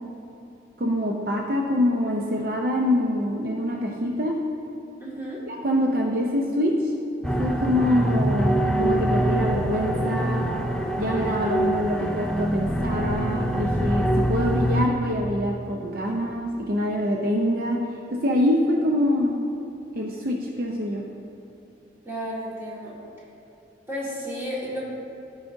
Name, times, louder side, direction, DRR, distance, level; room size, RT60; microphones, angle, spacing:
voice 1, 0.8-4.3 5.5-6.9 7.4-10.5 11.0-17.8 18.1-19.4 19.9-21.0, left 1 dB, 50° right, -1 dB, 0.5 m, -25 dB
voice 2, 5.0-5.4 22.1-23.0 23.9-24.8, equal, 15° right, -7 dB, 1.7 m, -32 dB
sound 1, 7.2-14.9, right 1 dB, 5° left, 0.4 m, -24 dB
14.0 x 4.8 x 2.6 m, 2.9 s
head